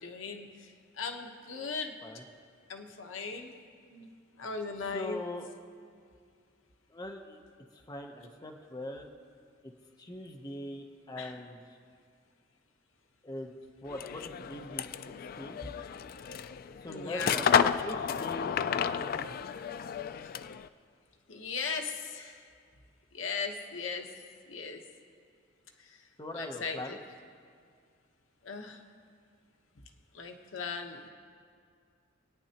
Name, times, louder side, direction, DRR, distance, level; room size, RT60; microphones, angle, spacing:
voice 1, 0.0-0.7 1.0-1.9 2.7-3.5 3.9-4.1 4.4-5.2 11.2-11.4 15.6-15.7 16.9-17.4 21.3-22.4 23.1-24.1 24.5-24.8 25.8-25.9 26.3-27.0 28.4-28.8 30.1-31.1, left 5 dB, 75° left, 4 dB, 1.0 m, -38 dB
voice 2, 4.9-5.4 6.9-7.4 7.7-9.1 9.6-9.7 10.0-11.6 13.2-13.5 13.8-14.8 15.4-15.8 16.8-17.5 17.8-18.6 18.9-19.3 26.2-27.0, left 1 dB, 20° left, 2 dB, 0.8 m, -41 dB
sound 1, 13.9-20.7, left 7 dB, 45° left, 0.3 m, -31 dB
26.5 x 9.5 x 2.9 m, 2.2 s
head